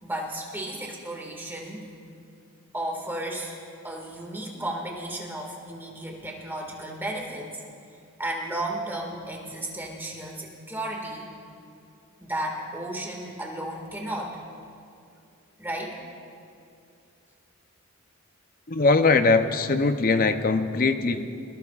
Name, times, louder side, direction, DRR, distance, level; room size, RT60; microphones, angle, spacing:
voice 1, 0.0-1.9 2.7-3.6 3.8-7.6 8.2-11.3 12.2-14.4 15.6-16.0, right 1 dB, 10° right, -1 dB, 2.0 m, -34 dB
voice 2, 18.7-21.3, left 3 dB, 40° left, 8 dB, 0.7 m, -21 dB
22.0 x 21.0 x 2.5 m, 2.5 s
head